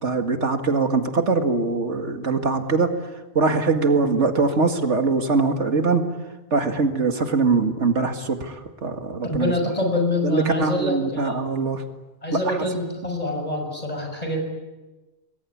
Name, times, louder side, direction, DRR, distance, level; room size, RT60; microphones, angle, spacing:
voice 1, 0.0-2.9 3.4-6.0 6.5-9.5 10.2-11.8 12.3-12.6, right 4 dB, 90° right, 6 dB, 2.3 m, -22 dB
voice 2, 9.2-11.3 12.2-14.4, left 1 dB, 35° left, 3 dB, 6.5 m, -25 dB
28.5 x 21.0 x 8.6 m, 1.2 s
omnidirectional pair, 1.2 m